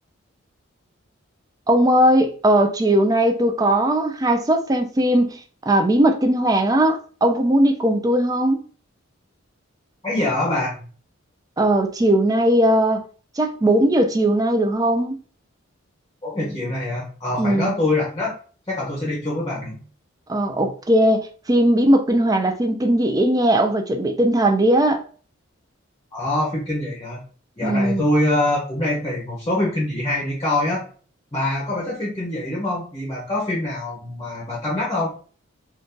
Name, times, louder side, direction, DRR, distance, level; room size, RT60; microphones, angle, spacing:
voice 1, 1.7-5.4 5.7-8.6 11.6-13.0 13.4-15.2 17.4-17.8 20.3-25.0 27.6-28.0, right 1 dB, 15° right, 0.3 m, -18 dB
voice 2, 10.0-10.8 16.2-18.3 18.7-19.8 26.1-27.2 27.6-30.9 31.3-35.2, left 1 dB, 20° left, 0.7 m, -24 dB
2.6 x 2.4 x 3.6 m
head